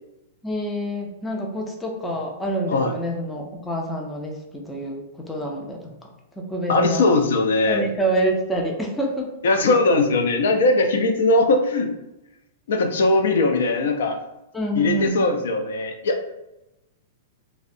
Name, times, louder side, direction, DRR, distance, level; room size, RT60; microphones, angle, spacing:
voice 1, 0.4-4.4 4.6-5.9 6.4-7.1 7.6-9.3 14.5-15.3, right 1 dB, 5° left, -1 dB, 0.3 m, -27 dB
voice 2, 6.7-7.9 9.4-11.9 12.7-14.2 14.7-16.2, left 2 dB, 80° left, 5 dB, 0.4 m, -20 dB
2.6 x 2.0 x 2.5 m, 0.90 s
supercardioid pair, 165°, 0 cm